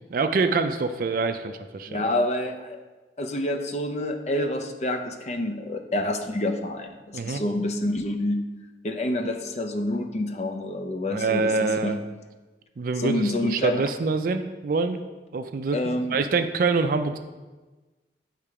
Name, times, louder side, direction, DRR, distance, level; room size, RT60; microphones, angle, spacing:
voice 1, 0.1-2.1 7.1-7.4 11.1-12.0 12.8-15.0 15.3-17.2, right 4 dB, 50° right, 9 dB, 0.4 m, -25 dB
voice 2, 1.9-2.8 3.2-8.4 8.8-12.0 13.0-13.9 15.7-16.1, left 1 dB, 40° left, 6 dB, 0.5 m, -28 dB
8.5 x 3.3 x 4.8 m, 1.2 s
head